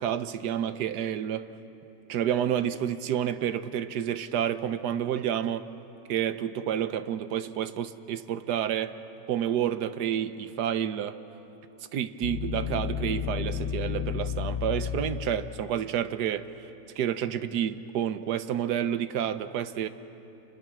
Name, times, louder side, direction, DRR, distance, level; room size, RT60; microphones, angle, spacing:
voice 1, 0.0-1.5 2.1-5.7 6.1-9.0 9.3-11.2 11.9-16.5 17.0-19.9, right 9 dB, 75° right, 1.4 m, -29 dB
sound 1, 12.2-15.7, left 8 dB, 50° left, 1.3 m, -32 dB
30.0 x 28.5 x 6.1 m
omnidirectional pair, 1.8 m